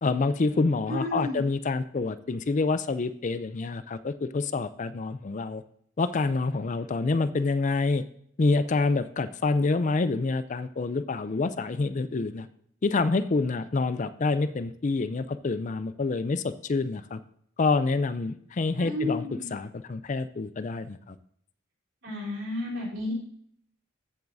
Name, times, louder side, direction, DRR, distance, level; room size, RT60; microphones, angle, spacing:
voice 1, 0.0-5.6 6.0-8.0 8.4-12.5 12.8-17.2 17.6-21.2, left 3 dB, 40° left, 13 dB, 0.4 m, -27 dB
voice 2, 0.9-1.4 18.8-19.5 22.0-23.1, left 1 dB, 75° right, -4 dB, 3.6 m, -32 dB
14.0 x 7.9 x 2.7 m, 0.66 s
head